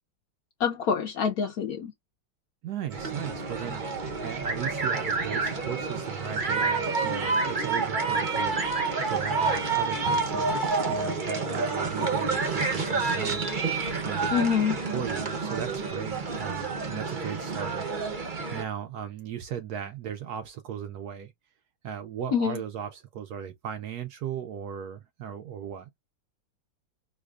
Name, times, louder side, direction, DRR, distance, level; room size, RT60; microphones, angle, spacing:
voice 1, 0.6-1.9 14.3-14.8 22.3-22.6, left 7 dB, 70° left, 0.9 m, -26 dB
voice 2, 2.6-8.6 9.1-10.6 10.9-13.5 14.0-14.4 14.9-17.9 18.5-21.3 21.8-25.9, right 9 dB, 70° right, 1.0 m, -37 dB
sound 1, 2.9-18.6, right 4 dB, 45° right, 0.6 m, -29 dB
4.8 x 2.3 x 2.4 m
omnidirectional pair, 2.1 m